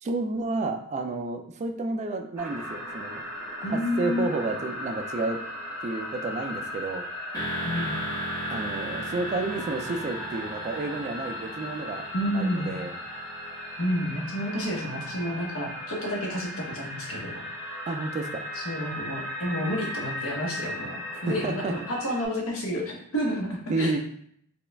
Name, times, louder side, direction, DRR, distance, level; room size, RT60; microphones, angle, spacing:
voice 1, 0.0-3.2 3.7-5.4 5.8-7.1 8.5-12.1 12.3-13.0 17.9-18.4 21.1-21.7 23.7-24.0, right 3 dB, 30° right, 6 dB, 0.3 m, -31 dB
sound 1, 2.4-22.3, left 1 dB, 10° right, 1.1 m, -37 dB
voice 2, 3.6-4.4 7.6-7.9 12.1-12.7 13.8-17.4 18.5-23.9, equal, 65° left, 0 dB, 1.0 m, -30 dB
sound 2, 7.3-15.1, right 1 dB, 20° left, 1.0 m, -37 dB
4.2 x 2.3 x 3.3 m, 0.66 s
head